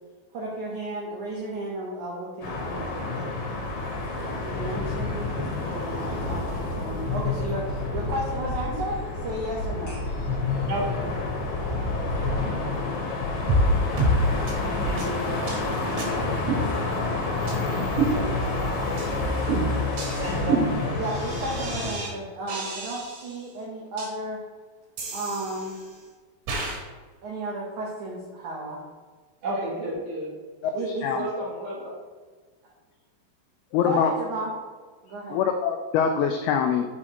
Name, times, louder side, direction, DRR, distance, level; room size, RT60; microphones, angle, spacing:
voice 1, 0.3-2.9 4.4-10.0 17.6-17.7 18.0-20.3 20.9-24.4 25.1-25.8 27.2-28.8 30.7-31.3 33.7-34.5 35.0-35.4, right 1 dB, 85° right, -3 dB, 1.7 m, -34 dB
sound 1, 2.4-21.9, left 3 dB, 70° left, 3.0 m, -29 dB
sound 2, 6.1-14.5, left 2 dB, 45° left, 2.2 m, -34 dB
voice 2, 10.7-11.0 14.6-15.8 20.1-21.2 29.4-30.4 31.1-31.9, right 1 dB, 50° right, -6 dB, 2.5 m, -33 dB
sound 3, 13.5-13.7 14.0-14.2 14.5-14.6 15.0-15.1 15.5-15.6 16.0-16.1 16.5-17.1 17.5-17.6 18.0-18.6 19.0-19.1 19.5-22.1 22.5-23.4 24.0-24.1 25.0-25.9 26.5-26.8, right 2 dB, 70° right, 3.8 m, -28 dB
voice 3, 30.7-31.2 33.7-34.1 35.3-36.9, left 7 dB, 90° left, 5 dB, 2.2 m, -24 dB
7.2 x 6.3 x 2.9 m, 1.4 s
omnidirectional pair, 4.9 m